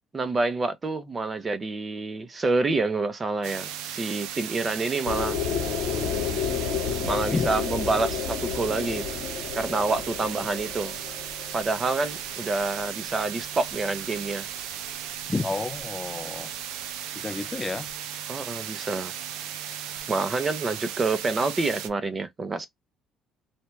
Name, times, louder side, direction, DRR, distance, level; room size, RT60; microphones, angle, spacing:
voice 1, 0.1-5.4 7.0-9.1 9.5-11.0 11.5-14.5 18.3-19.1 20.1-22.7, right 3 dB, 30° right, 0.7 m, -27 dB
sound 1, 3.4-21.9, right 10 dB, 80° right, 0.4 m, -36 dB
sound 2, 5.1-12.9, left 7 dB, 80° left, 1.1 m, -31 dB
voice 2, 15.3-16.5 17.2-17.9, left 3 dB, 25° left, 0.3 m, -30 dB
2.7 x 2.3 x 3.1 m
supercardioid pair, 70°, 0 cm